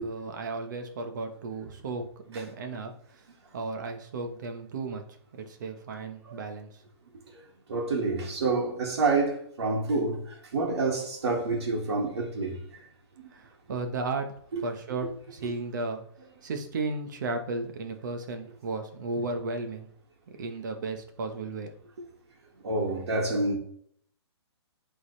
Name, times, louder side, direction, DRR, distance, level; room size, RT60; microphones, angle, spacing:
voice 1, 0.0-3.2 3.5-5.0 5.3-6.8 13.3-16.0 16.4-19.9 20.4-21.7, right 3 dB, 45° right, 1.1 m, -34 dB
voice 2, 7.7-10.2 10.5-12.6 14.5-14.6 22.6-23.6, right 3 dB, 65° right, 2.1 m, -27 dB
11.0 x 4.0 x 3.3 m
hypercardioid pair, 175°, 14 cm